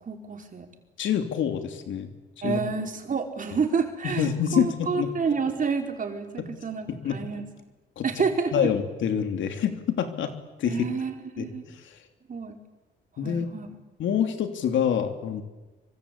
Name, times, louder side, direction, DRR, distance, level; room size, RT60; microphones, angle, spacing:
voice 1, 0.1-0.7 2.4-7.4 8.0-8.7 10.7-11.6 12.3-12.6 13.2-13.7, right 5 dB, 40° right, 3 dB, 4.7 m, -29 dB
voice 2, 1.0-2.1 2.4-2.6 4.0-5.1 6.4-6.5 6.9-7.2 8.0-8.1 8.5-10.3 10.6-10.8 11.4-12.0 13.2-13.5 14.0-15.4, left 8 dB, 75° left, 6 dB, 3.2 m, -26 dB
26.0 x 24.5 x 8.6 m, 1.2 s
cardioid pair, 90°, 20 cm